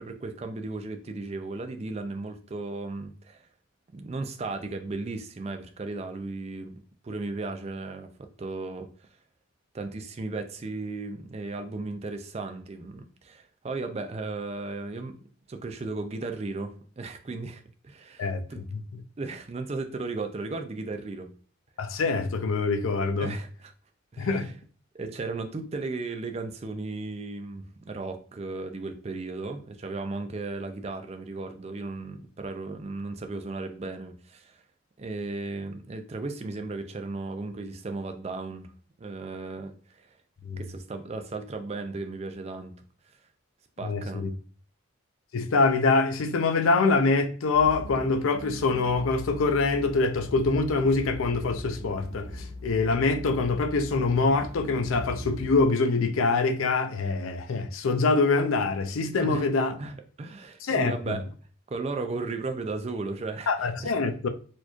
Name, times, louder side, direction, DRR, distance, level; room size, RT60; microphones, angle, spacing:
voice 1, 0.0-3.4 3.9-8.9 9.7-15.1 15.5-18.6 19.2-21.3 23.2-23.7 24.1-24.5 24.9-34.6 35.0-38.7 39.0-40.2 40.6-42.8 43.8-44.3 59.2-59.5 59.8-61.2 61.7-64.1, right 3 dB, 30° right, 0.4 m, -35 dB
voice 2, 21.8-23.3 24.2-24.5 40.4-40.6 43.8-44.3 45.3-59.8 60.6-61.2 63.5-64.3, left 3 dB, 80° left, 0.5 m, -25 dB
sound 1, 47.5-55.6, left 1 dB, 70° right, 0.6 m, -40 dB
4.2 x 3.0 x 2.3 m
head